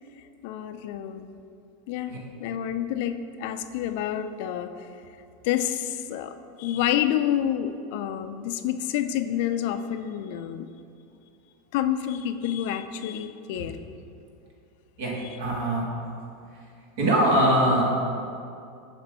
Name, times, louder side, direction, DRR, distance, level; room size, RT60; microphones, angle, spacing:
voice 1, 0.4-1.3 1.9-4.9 5.4-10.7 11.7-13.8 15.2-15.4, left 10 dB, 65° left, 9 dB, 0.3 m, -28 dB
voice 2, 15.4-15.8 17.0-18.0, right 1 dB, 70° right, -2 dB, 1.5 m, -21 dB
7.4 x 2.6 x 5.4 m, 2.5 s
hypercardioid pair, 100°, 0 cm